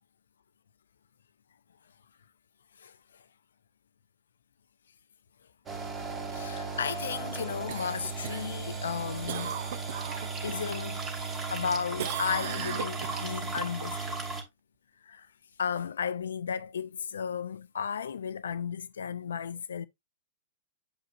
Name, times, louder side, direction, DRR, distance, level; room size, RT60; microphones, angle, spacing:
sound 1, 5.7-14.4, right 4 dB, 25° right, 2.4 m, -36 dB
voice 1, 6.3-9.5 10.4-14.2 15.0-15.3 15.6-19.9, left 7 dB, 75° left, 0.4 m, -34 dB
Cough, 7.7-10.7 11.1-11.7 12.0-13.7 18.1-18.2, right 10 dB, 60° right, 0.7 m, -38 dB
8.7 x 4.9 x 2.6 m
figure-of-eight pair, 105°, 0 cm